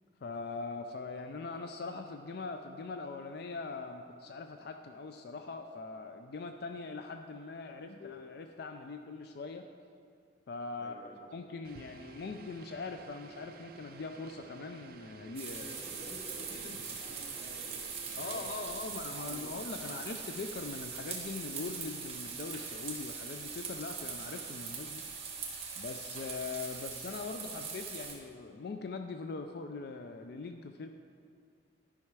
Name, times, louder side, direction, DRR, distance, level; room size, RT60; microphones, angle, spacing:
voice 1, 0.2-9.6 10.5-10.9 11.3-15.6 16.6-16.8 18.2-25.0 25.8-30.9, left 4 dB, 55° left, 6 dB, 0.4 m, -41 dB
voice 2, 10.8-11.2 15.5-17.8 18.0-19.9, right 1 dB, 5° left, -9 dB, 2.5 m, -51 dB
sound 1, 11.6-18.7, right 5 dB, 50° right, 0.5 m, -53 dB
sound 2, 15.3-28.1, right 5 dB, 30° right, 1.4 m, -41 dB
12.0 x 5.6 x 4.7 m, 2.3 s
head